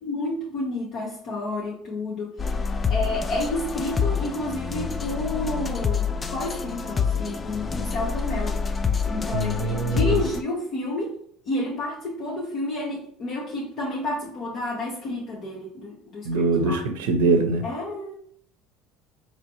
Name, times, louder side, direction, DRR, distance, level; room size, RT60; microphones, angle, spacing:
voice 1, 0.0-2.3 2.9-8.6 9.0-11.2 11.5-16.8 17.6-18.1, left 2 dB, 55° left, -4 dB, 0.9 m, -30 dB
sound 1, 2.4-10.4, left 5 dB, 25° left, 0.3 m, -27 dB
voice 2, 9.3-10.2 16.2-17.6, right 3 dB, 85° right, 6 dB, 0.6 m, -23 dB
4.2 x 3.0 x 2.9 m, 0.64 s
supercardioid pair, 90°, 0 cm